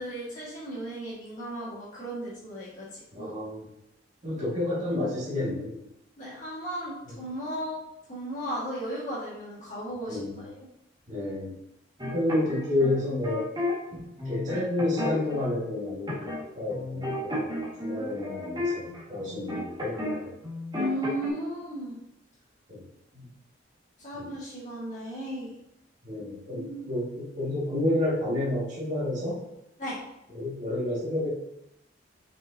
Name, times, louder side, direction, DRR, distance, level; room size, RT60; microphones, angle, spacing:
voice 1, 0.0-3.4 6.2-7.8 8.1-10.6 20.7-22.0 24.0-25.5 26.5-26.9 29.8-30.0, equal, 40° left, -8 dB, 2.1 m, -35 dB
voice 2, 3.1-3.7 4.2-5.8 7.0-7.1 10.1-10.4 11.1-11.6 12.0-13.5 13.9-20.4 22.7-22.8 23.1-23.3 24.1-24.3 26.0-29.4 30.3-31.3, left 1 dB, 40° right, -8 dB, 2.3 m, -30 dB
sound 1, 12.0-13.7 14.2-15.4 16.1-16.4 16.7-20.2 20.4-21.3, left 1 dB, 25° right, 2.0 m, -33 dB
5.9 x 5.4 x 2.9 m, 0.84 s
head